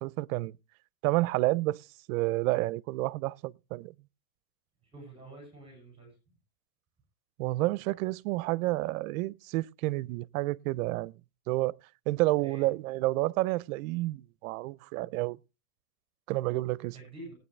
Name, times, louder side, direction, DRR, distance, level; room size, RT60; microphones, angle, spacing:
voice 1, 0.0-0.5 1.0-3.9 7.4-11.1 11.5-11.7 12.1-15.4 16.3-16.9, right 19 dB, 65° right, 0.6 m, -30 dB
voice 2, 4.8-6.1 12.4-12.7 16.9-17.3, right 2 dB, 10° right, 6.7 m, -48 dB
18.5 x 9.3 x 3.2 m
supercardioid pair, 150°, 44 cm